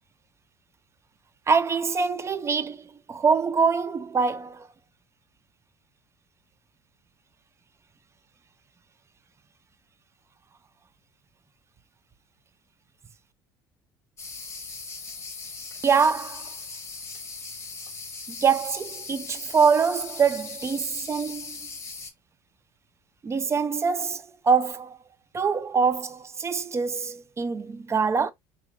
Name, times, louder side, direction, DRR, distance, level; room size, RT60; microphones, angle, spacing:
voice 1, 1.5-4.7 15.8-16.5 18.3-21.6 23.2-25.0 25.3-28.3, right 5 dB, 25° right, 0.4 m, -24 dB
sound 1, 14.2-22.1, left 4 dB, 25° left, 0.9 m, -39 dB
2.9 x 2.9 x 2.4 m
hypercardioid pair, 65°, 11 cm